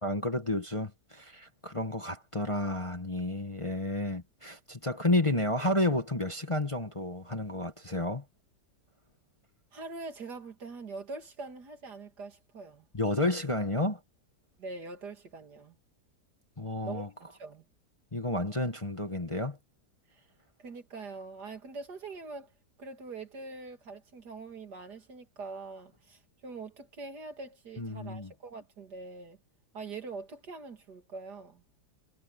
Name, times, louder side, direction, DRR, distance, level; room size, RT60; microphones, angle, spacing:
voice 1, 0.0-8.2 12.9-14.0 16.6-17.1 18.1-19.6 27.8-28.3, left 1 dB, 20° left, 1.3 m, -31 dB
voice 2, 9.7-12.9 14.6-15.8 16.8-17.6 20.1-20.3 20.6-22.5 22.8-29.4 29.7-31.6, right 3 dB, 70° right, 3.1 m, -43 dB
omnidirectional pair, 1.8 m